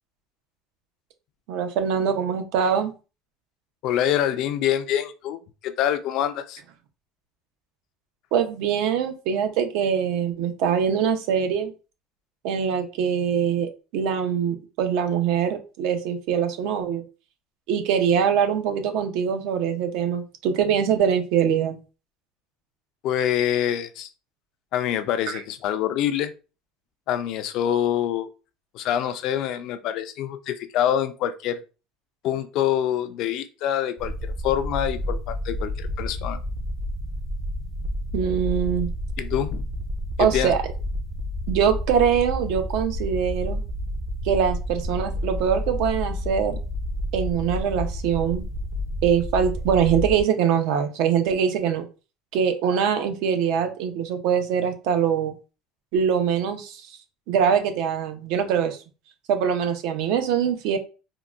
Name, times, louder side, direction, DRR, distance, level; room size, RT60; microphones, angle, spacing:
voice 1, 1.5-2.9 8.3-11.7 12.4-17.0 17.7-21.8 38.1-38.9 40.2-40.6 41.5-43.6 44.2-46.6 47.1-48.4 49.0-51.9 52.3-55.3 55.9-56.9 57.3-58.8 59.3-60.8, right 7 dB, 60° right, 7 dB, 0.6 m, -23 dB
voice 2, 3.8-6.6 23.0-24.1 24.7-26.3 27.1-28.3 28.7-31.6 32.2-36.4 39.2-39.6 40.2-40.5, left 10 dB, 50° left, 11 dB, 0.3 m, -25 dB
sound 1, 34.0-50.2, left 1 dB, 15° right, 0.5 m, -30 dB
3.6 x 2.2 x 2.3 m, 0.33 s
cardioid pair, 165°, 0 cm